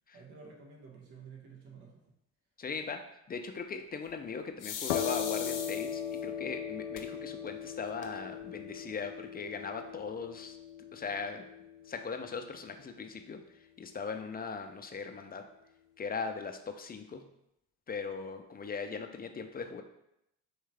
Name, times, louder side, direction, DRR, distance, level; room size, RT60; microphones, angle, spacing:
voice 1, 0.1-2.1, right 5 dB, 65° right, -1 dB, 1.5 m, -51 dB
voice 2, 2.6-3.0 3.3-10.6 10.9-11.5 11.9-13.4 13.8-15.4 16.0-17.2 17.9-19.8, left 5 dB, 20° left, 6 dB, 0.5 m, -39 dB
sound 1, 4.6-6.2 7.0-7.1 7.5-7.6 7.8-8.4, left 7 dB, 50° left, 0.9 m, -39 dB
sound 2, 4.9-12.4, left 8 dB, 85° left, 0.6 m, -39 dB
4.7 x 3.2 x 3.4 m, 0.82 s
supercardioid pair, 75°, 42 cm